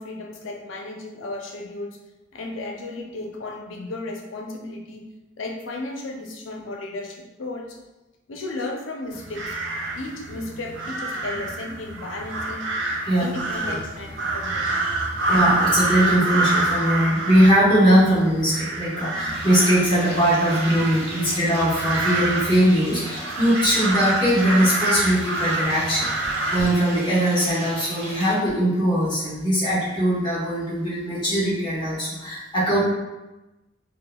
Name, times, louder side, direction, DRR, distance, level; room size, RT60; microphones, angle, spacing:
voice 1, 0.0-2.0 2.3-5.0 5.4-7.8 8.3-9.5 9.9-12.6 13.2-14.8, left 2 dB, 90° left, 1 dB, 0.6 m, -34 dB
sound 1, 9.1-26.6, right 2 dB, 75° right, 0.5 m, -27 dB
voice 2, 13.0-13.4 13.7-13.8 15.3-32.8, equal, 25° left, -8 dB, 1.1 m, -21 dB
sound 2, 19.3-28.3, right 1 dB, 30° right, 0.9 m, -37 dB
4.8 x 2.2 x 2.2 m, 1.1 s
head